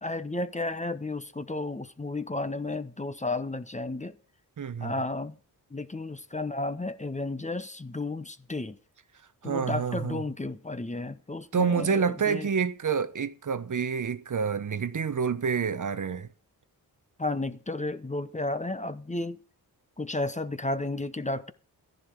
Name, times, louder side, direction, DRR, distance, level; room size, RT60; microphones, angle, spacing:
voice 1, 0.0-4.2 4.8-5.4 5.7-8.8 9.4-12.5 17.2-19.4 20.0-21.5, left 2 dB, 20° left, 1.0 m, -32 dB
voice 2, 4.6-4.9 9.4-10.2 11.5-16.3, right 6 dB, 50° right, 1.0 m, -28 dB
13.0 x 11.0 x 4.7 m
cardioid pair, 70°, 39 cm